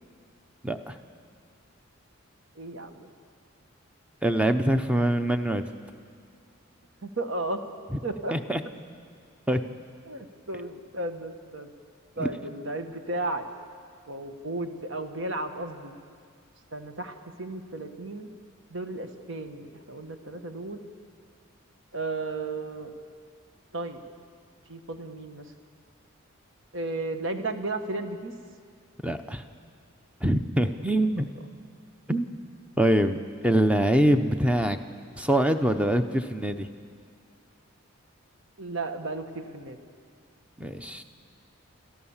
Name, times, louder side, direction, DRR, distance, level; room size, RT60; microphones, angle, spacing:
voice 1, 0.6-1.0 4.2-5.6 8.3-8.6 9.5-9.6 12.2-12.3 29.0-29.4 30.2-31.3 32.1-32.3 32.8-34.8 35.2-36.7 40.6-41.0, right 1 dB, 5° right, 8 dB, 0.7 m, -24 dB
voice 2, 2.5-3.1 7.0-7.6 8.0-8.3 10.0-11.7 12.2-13.5 14.1-15.9 16.7-18.3 18.7-20.9 21.9-22.9 23.7-24.0 24.7-25.5 26.7-28.3 38.6-39.8, right 2 dB, 55° right, 6 dB, 1.5 m, -34 dB
29.0 x 13.5 x 7.3 m, 2.1 s
head